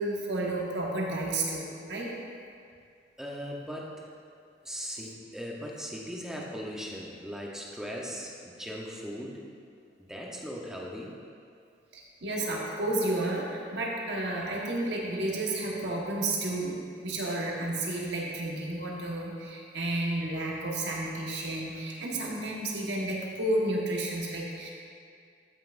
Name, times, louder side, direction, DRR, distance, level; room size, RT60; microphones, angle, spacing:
voice 1, 0.0-2.1 4.7-4.8 11.9-16.8 17.0-24.7, right 2 dB, 75° right, -3 dB, 1.3 m, -31 dB
voice 2, 3.2-4.0 4.6-9.4 10.1-11.1, equal, 5° right, -3 dB, 0.9 m, -38 dB
13.0 x 5.8 x 2.5 m, 2.3 s
head